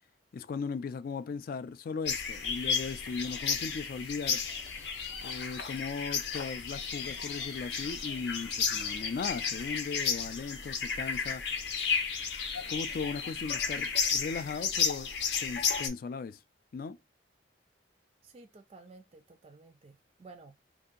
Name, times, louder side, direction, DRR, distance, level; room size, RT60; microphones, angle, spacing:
voice 1, 0.3-4.4 5.2-11.4 12.7-15.1 15.4-16.4 16.7-17.0, left 5 dB, 55° left, 0.3 m, -37 dB
sound 1, 2.0-15.9, left 6 dB, 75° left, 0.7 m, -33 dB
voice 2, 18.2-20.6, right 3 dB, 35° right, 0.3 m, -53 dB
2.7 x 2.4 x 3.7 m
head